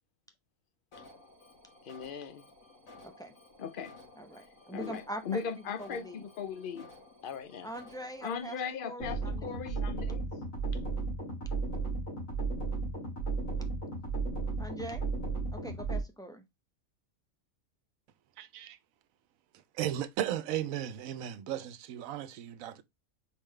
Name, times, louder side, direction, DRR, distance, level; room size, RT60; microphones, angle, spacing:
Alarm, 0.9-8.7, left 2 dB, 90° left, 2.0 m, -55 dB
voice 1, 1.9-2.4 3.6-3.9 4.7-6.9 7.2-7.7 8.2-10.2, left 6 dB, 50° left, 0.7 m, -38 dB
voice 2, 3.0-3.3 4.2-5.5 5.8-6.3 7.6-9.6 14.6-15.0 15.5-16.4, right 1 dB, 5° left, 0.3 m, -43 dB
sound 1, 9.0-16.0, right 3 dB, 75° left, 2.6 m, -34 dB
voice 3, 18.4-18.8 19.8-22.8, right 11 dB, 85° right, 1.0 m, -35 dB
4.6 x 3.6 x 3.2 m
omnidirectional pair, 1.4 m